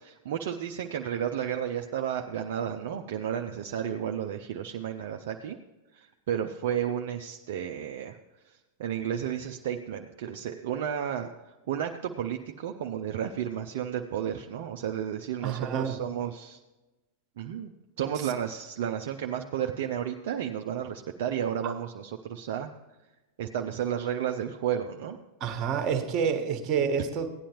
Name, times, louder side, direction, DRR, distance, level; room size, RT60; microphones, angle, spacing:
voice 1, 0.0-5.6 5.9-8.2 8.8-11.3 11.7-16.6 17.4-17.7 18.0-22.7 23.4-25.2, right 9 dB, 55° right, 3 dB, 0.6 m, -32 dB
voice 2, 15.4-16.0 25.4-27.3, right 7 dB, 35° right, 6 dB, 1.4 m, -28 dB
16.5 x 9.9 x 3.0 m, 1.1 s
figure-of-eight pair, 90°, 0 cm